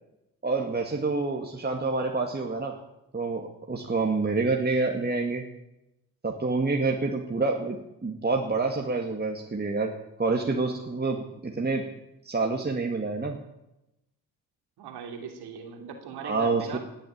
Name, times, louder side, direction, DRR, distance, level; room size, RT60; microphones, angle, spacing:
voice 1, 0.4-2.7 3.1-5.4 6.2-7.8 8.0-9.9 10.2-11.8 12.2-13.4 16.2-16.8, right 3 dB, 25° right, 2 dB, 2.1 m, -27 dB
voice 2, 14.8-16.8, right 6 dB, 80° right, 5 dB, 3.1 m, -39 dB
18.5 x 7.9 x 8.8 m, 0.89 s
supercardioid pair, 60°, 39 cm